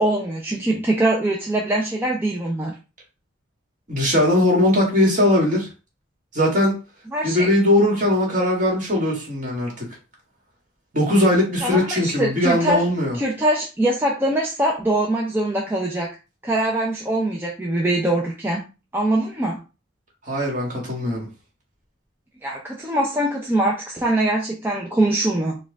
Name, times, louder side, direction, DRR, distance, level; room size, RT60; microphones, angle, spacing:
voice 1, 0.0-2.7 7.1-7.5 11.6-12.8 13.2-16.1 16.4-18.6 18.9-19.6 22.4-25.6, right 1 dB, 10° right, -2 dB, 0.5 m, -22 dB
voice 2, 3.9-5.7 6.3-6.8 7.2-9.9 10.9-13.2 20.3-21.3, left 1 dB, 40° right, -2 dB, 1.7 m, -19 dB
4.6 x 2.3 x 3.5 m, 0.31 s
head